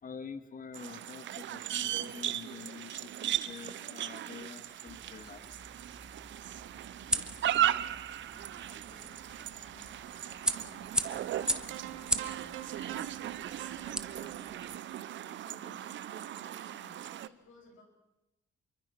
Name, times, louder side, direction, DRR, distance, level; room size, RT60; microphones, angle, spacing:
voice 1, 0.0-5.5, left 5 dB, 45° left, 11 dB, 2.0 m, -46 dB
sound 1, 0.7-17.3, right 12 dB, 70° right, 0.9 m, -37 dB
sound 2, 4.9-14.8, right 1 dB, 5° right, 1.6 m, -39 dB
voice 2, 8.3-17.8, left 3 dB, 80° left, 2 dB, 7.5 m, -58 dB
sound 3, 11.4-15.7, right 13 dB, 90° right, 1.6 m, -45 dB
27.5 x 23.5 x 5.9 m, 0.94 s
cardioid pair, 90°, 20 cm